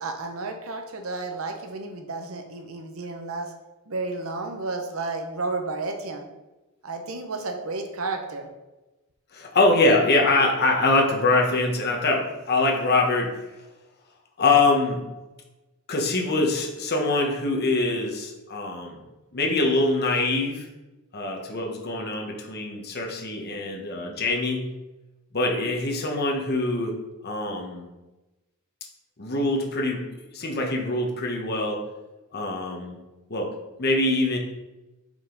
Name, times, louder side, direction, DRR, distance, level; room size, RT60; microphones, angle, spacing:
voice 1, 0.0-3.5 3.9-6.3 6.8-8.5, right 3 dB, 70° right, 4 dB, 0.9 m, -32 dB
voice 2, 9.3-13.4 14.4-15.0 15.9-19.0 19.3-20.7 21.1-24.7 25.3-27.0 27.2-27.9 29.2-30.0 30.3-31.8 32.3-33.0 33.3-33.5 33.8-34.4, left 2 dB, 50° left, 1 dB, 1.1 m, -23 dB
5.5 x 5.0 x 3.9 m, 1.0 s
head